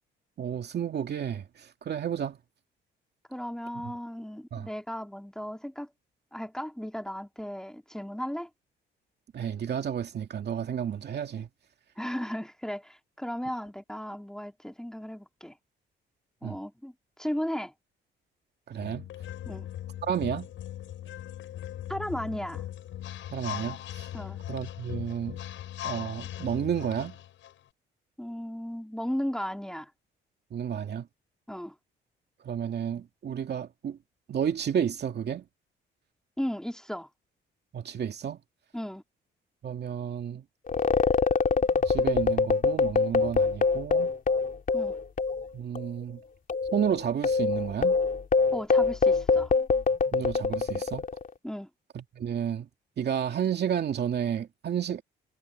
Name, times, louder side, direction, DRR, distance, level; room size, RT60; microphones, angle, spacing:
voice 1, 0.4-2.4 3.8-3.9 4.5-4.7 9.3-11.5 16.4-16.6 18.7-19.1 20.0-20.5 23.3-24.1 24.5-25.4 25.8-27.2 30.5-31.1 32.4-34.0 34.3-35.4 37.7-38.4 39.6-40.4 41.9-44.1 45.5-46.2 46.7-48.0 50.1-51.1 51.9-52.7 53.0-55.0, right 8 dB, 55° right, 2.4 m, -31 dB
voice 2, 3.3-5.9 6.3-8.5 12.0-15.6 16.4-16.9 17.2-17.7 19.5-19.7 21.9-22.7 24.1-24.4 28.2-29.9 31.5-31.7 36.4-37.1 38.7-39.0 44.7-45.0 48.5-49.5 51.4-51.7, equal, 5° left, 2.9 m, -35 dB
sound 1, 18.8-27.5, left 12 dB, 80° left, 7.2 m, -39 dB
sound 2, 40.7-45.5 45.8-45.9 46.5-51.3, left 4 dB, 45° left, 3.2 m, -24 dB
cardioid pair, 90°, 20 cm